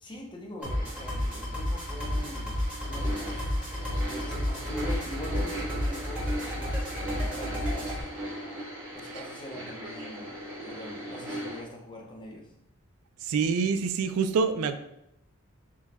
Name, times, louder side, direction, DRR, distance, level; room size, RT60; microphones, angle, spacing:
voice 1, 0.0-3.5 4.0-8.1 8.9-12.5, left 1 dB, 20° left, -1 dB, 0.6 m, -43 dB
sound 1, 0.6-8.0, left 1 dB, 5° right, 1.0 m, -31 dB
sound 2, 0.6-11.6, right 1 dB, 55° right, 1.4 m, -38 dB
voice 2, 13.2-14.8, right 5 dB, 85° right, 10 dB, 0.3 m, -26 dB
4.6 x 2.2 x 3.4 m, 0.82 s
head